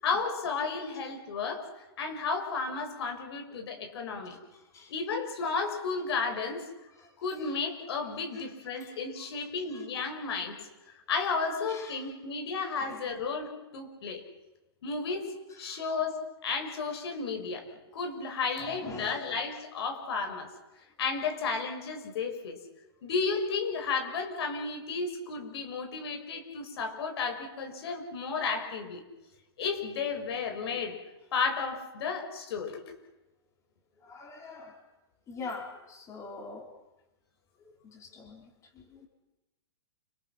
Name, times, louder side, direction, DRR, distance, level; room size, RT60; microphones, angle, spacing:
voice 1, 0.0-4.4 4.9-6.6 7.2-10.6 11.1-14.2 14.8-15.3 15.6-17.7 17.9-20.5 21.0-22.6 23.0-29.0 29.6-31.0 31.3-32.9, left 4 dB, 65° left, 5 dB, 6.6 m, -33 dB
voice 2, 11.5-11.9 12.8-12.9 15.6-15.8 18.6-19.2 34.1-34.8 35.3-36.7 37.9-38.5 38.9-39.1, left 3 dB, 20° left, 1 dB, 5.1 m, -43 dB
29.5 x 27.0 x 6.0 m, 1.0 s
hypercardioid pair, 140°, 14 cm